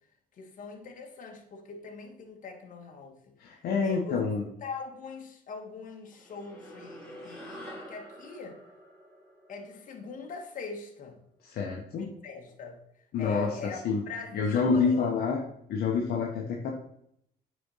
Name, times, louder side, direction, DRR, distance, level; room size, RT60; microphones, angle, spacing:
voice 1, 0.3-3.2 3.5-4.2 4.6-8.6 9.5-11.2 12.0-15.1, left 4 dB, 50° left, 3 dB, 1.9 m, -42 dB
voice 2, 3.4-4.4 11.4-12.1 13.1-13.5 13.8-14.0 14.3-15.4 15.7-16.7, left 5 dB, 65° left, -1 dB, 1.3 m, -27 dB
sound 1, 6.1-10.8, equal, 5° left, 3.1 m, -47 dB
8.4 x 4.4 x 5.7 m, 0.71 s
cardioid pair, 110°, 17 cm